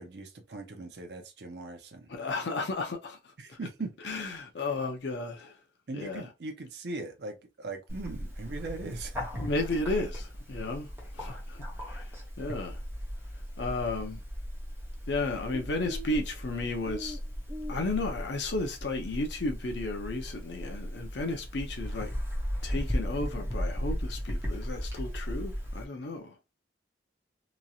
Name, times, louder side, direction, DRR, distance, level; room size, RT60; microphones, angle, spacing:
voice 1, 0.0-2.1 3.4-3.9 5.9-9.2, right 3 dB, 70° right, 0.6 m, -39 dB
voice 2, 2.1-3.2 3.5-3.6 4.0-5.6 5.9-6.3 9.3-12.8 13.6-14.2 15.1-17.2 17.7-22.1 22.6-26.4, left 2 dB, 75° left, 0.6 m, -33 dB
Bird, 7.9-25.8, equal, 15° right, 0.7 m, -36 dB
3.0 x 2.7 x 2.3 m
head